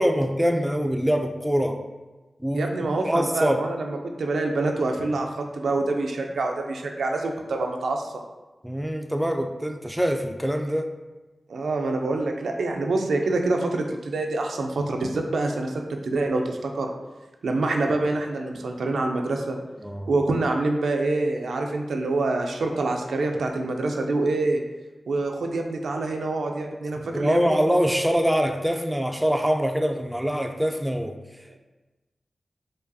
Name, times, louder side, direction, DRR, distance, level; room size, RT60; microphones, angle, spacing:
voice 1, 0.0-1.8 2.4-2.7 3.1-3.6 8.6-10.9 19.8-20.1 27.1-31.2, equal, 5° right, 5 dB, 0.3 m, -24 dB
voice 2, 2.5-8.2 11.5-15.7 16.0-16.9 17.4-19.6 20.1-24.6 25.1-27.6, right 2 dB, 90° right, 2 dB, 0.3 m, -26 dB
4.7 x 2.3 x 2.6 m, 1.1 s
cardioid pair, 45°, 0 cm